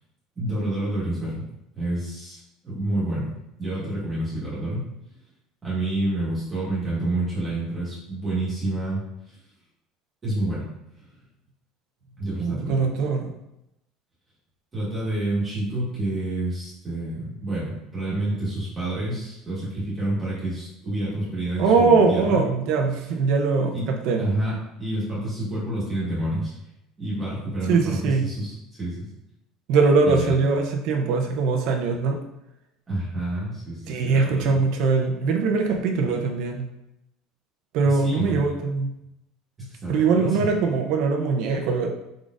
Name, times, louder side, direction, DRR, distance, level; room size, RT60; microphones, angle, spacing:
voice 1, 0.4-1.4 1.7-2.4 2.6-3.3 3.6-4.9 5.6-9.4 10.2-10.7 12.2-12.9 14.7-22.4 23.7-23.9 24.2-26.6 27.0-28.5 28.8-29.1 30.0-30.3 32.9-34.6 37.8-38.4 39.6-40.5, right 1 dB, 15° right, -9 dB, 1.4 m, -28 dB
voice 2, 12.4-13.3 21.6-24.2 27.7-28.3 29.7-32.2 33.9-36.7 37.7-38.9 39.9-41.9, right 4 dB, 55° right, 3 dB, 0.6 m, -22 dB
4.8 x 3.9 x 2.5 m, 0.87 s
cardioid pair, 175°, 0 cm